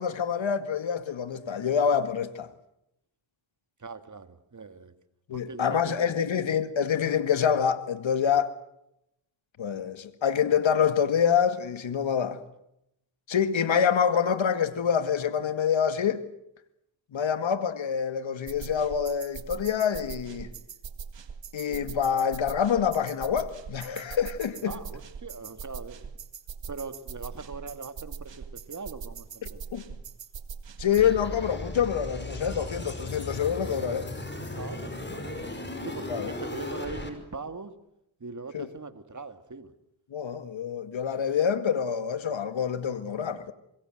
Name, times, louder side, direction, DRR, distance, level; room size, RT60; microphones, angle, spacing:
voice 1, 0.0-2.5 5.3-8.5 9.6-12.4 13.3-16.2 17.1-20.5 21.5-24.7 29.7-29.8 30.8-34.1 36.1-36.3 38.5-38.7 40.1-43.5, left 7 dB, 70° left, 2.1 m, -26 dB
voice 2, 3.8-4.9 5.3-6.1 24.6-26.0 26.7-29.7 34.5-35.5 35.8-37.7 38.2-39.7, right 4 dB, 35° right, 2.4 m, -41 dB
sound 1, 18.5-31.0, right 6 dB, 60° right, 2.0 m, -41 dB
sound 2, 31.0-37.1, left 1 dB, 20° left, 5.3 m, -36 dB
26.0 x 21.5 x 7.9 m
cardioid pair, 65°, 48 cm